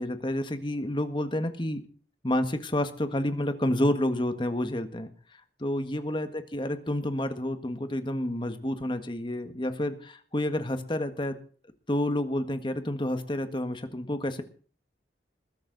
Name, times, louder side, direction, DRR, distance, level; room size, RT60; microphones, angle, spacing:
voice 1, 0.0-1.8 2.2-5.1 5.6-11.4 11.9-14.4, left 1 dB, 25° left, 8 dB, 1.6 m, -29 dB
21.0 x 12.5 x 4.0 m, 0.42 s
head